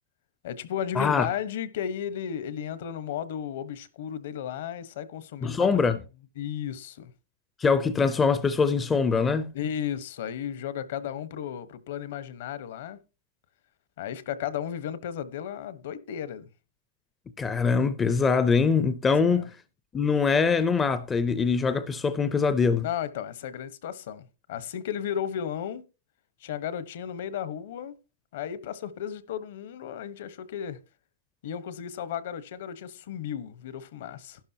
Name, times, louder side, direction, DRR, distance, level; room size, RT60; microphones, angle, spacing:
voice 1, 0.4-5.8 6.4-7.1 9.5-13.0 14.0-16.5 19.0-19.5 22.8-25.8 26.4-28.0 28.3-30.8 31.4-34.4, left 9 dB, 55° left, 1.1 m, -34 dB
voice 2, 1.0-1.3 5.4-6.0 7.6-9.5 17.4-19.5 19.9-22.8, left 5 dB, 10° left, 0.5 m, -23 dB
12.0 x 11.5 x 2.8 m
supercardioid pair, 165°, 0 cm